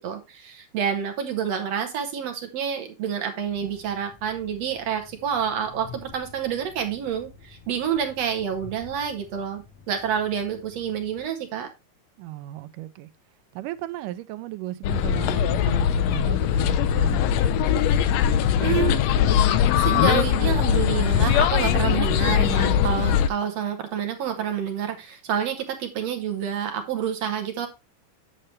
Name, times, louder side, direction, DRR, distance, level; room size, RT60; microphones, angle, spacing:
voice 1, 0.0-11.7 18.6-19.0 19.8-27.7, right 8 dB, 65° right, 1.8 m, -28 dB
Train, 3.4-11.3, left 5 dB, 50° left, 3.4 m, -49 dB
voice 2, 12.2-13.1 13.6-17.2, right 15 dB, 85° right, 2.2 m, -35 dB
sound 1, 14.8-23.3, left 9 dB, 90° left, 1.4 m, -21 dB
8.9 x 6.6 x 3.2 m
omnidirectional pair, 3.7 m